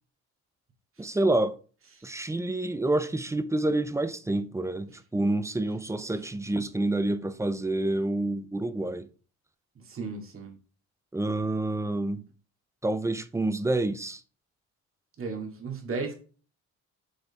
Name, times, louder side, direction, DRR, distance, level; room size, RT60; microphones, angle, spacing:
voice 1, 1.0-1.6 2.0-9.1 11.1-12.2 12.8-14.2, right 2 dB, 10° right, 0.5 m, -28 dB
voice 2, 9.8-10.5 15.2-16.1, right 4 dB, 45° right, 2.2 m, -35 dB
6.2 x 4.0 x 4.2 m
cardioid pair, 90°, 30 cm